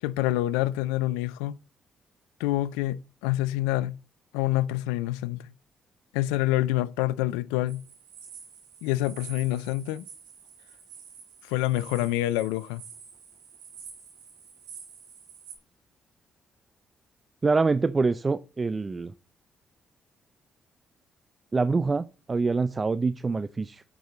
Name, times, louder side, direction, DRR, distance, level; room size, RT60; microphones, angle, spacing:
voice 1, 0.0-1.6 2.4-4.0 4.3-5.5 6.1-7.8 8.8-10.0 11.4-12.8, left 16 dB, 85° left, 0.4 m, -27 dB
sound 1, 7.7-15.5, right 7 dB, 80° right, 4.3 m, -48 dB
voice 2, 17.4-19.1 21.5-23.8, right 4 dB, 35° right, 0.5 m, -25 dB
8.4 x 6.2 x 4.0 m
hypercardioid pair, 45°, 0 cm